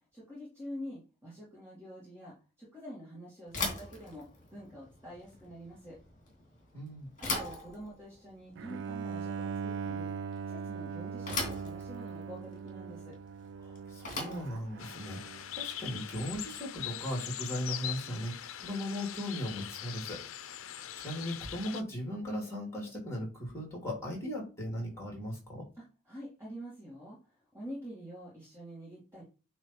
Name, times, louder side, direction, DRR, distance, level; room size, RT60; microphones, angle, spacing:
voice 1, 0.1-6.0 7.2-10.1 10.4-13.2 25.8-29.2, equal, 10° right, -7 dB, 2.3 m, -46 dB
Bicycle / Thump thud, 3.5-16.6, left 3 dB, 40° left, 2.6 m, -41 dB
voice 2, 6.7-7.1 13.6-20.2 20.6-25.6, equal, 15° left, -1 dB, 3.0 m, -38 dB
Bowed string instrument, 8.5-15.6, right 5 dB, 55° right, 0.3 m, -40 dB
sound 1, 14.8-21.8, left 11 dB, 75° left, 0.5 m, -42 dB
8.7 x 3.2 x 4.5 m, 0.33 s
head